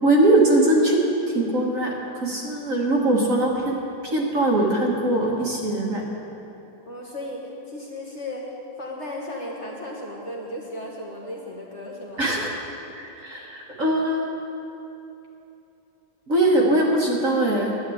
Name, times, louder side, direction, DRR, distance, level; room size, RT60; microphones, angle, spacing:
voice 1, 0.0-1.0 1.3-3.8 4.0-6.0 12.2-12.5 13.0-14.3 16.3-17.9, right 1 dB, 45° right, -2 dB, 1.9 m, -21 dB
voice 2, 6.8-8.5 8.8-12.3, left 1 dB, 40° left, -3 dB, 1.6 m, -35 dB
11.0 x 8.4 x 8.4 m, 3.0 s
omnidirectional pair, 2.0 m